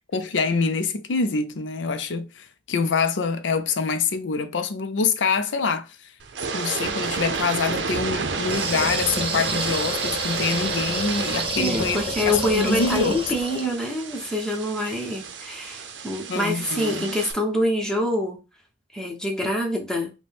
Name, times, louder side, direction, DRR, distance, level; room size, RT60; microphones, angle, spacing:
voice 1, 0.0-6.1 6.5-13.2 16.3-17.1, left 4 dB, 90° left, 0.5 m, -25 dB
sound 1, 6.2-17.3, right 5 dB, 85° right, 0.7 m, -31 dB
sound 2, 8.4-13.7, right 1 dB, 30° right, 1.0 m, -29 dB
voice 2, 11.6-18.4 18.9-20.1, left 1 dB, 5° left, 0.9 m, -26 dB
5.0 x 2.2 x 3.4 m
head